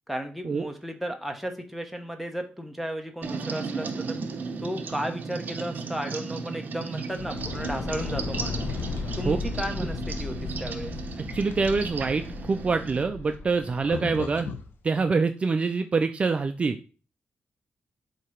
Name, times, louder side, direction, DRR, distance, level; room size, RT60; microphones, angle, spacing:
voice 1, 0.1-4.2 4.6-8.7 9.2-10.9, equal, ahead, 3 dB, 0.9 m, -34 dB
sound 1, 3.2-13.0, right 4 dB, 55° right, 0.8 m, -35 dB
sound 2, 7.1-14.7, left 4 dB, 80° left, 0.9 m, -35 dB
voice 2, 11.3-14.5 14.8-16.8, right 4 dB, 35° right, 7 dB, 0.4 m, -25 dB
7.4 x 2.8 x 4.9 m, 0.36 s
wide cardioid pair, 155°, 4 cm